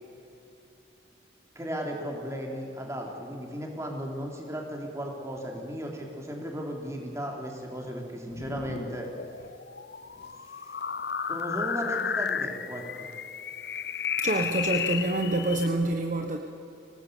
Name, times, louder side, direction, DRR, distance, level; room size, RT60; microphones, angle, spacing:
voice 1, 1.6-9.1 10.5-10.6 11.3-13.1, equal, 15° right, 0 dB, 3.6 m, -35 dB
sound 1, 8.3-15.7, left 7 dB, 55° left, 0.7 m, -33 dB
voice 2, 14.2-16.4, right 2 dB, 40° right, 3 dB, 1.2 m, -27 dB
25.0 x 18.5 x 8.3 m, 2.8 s
head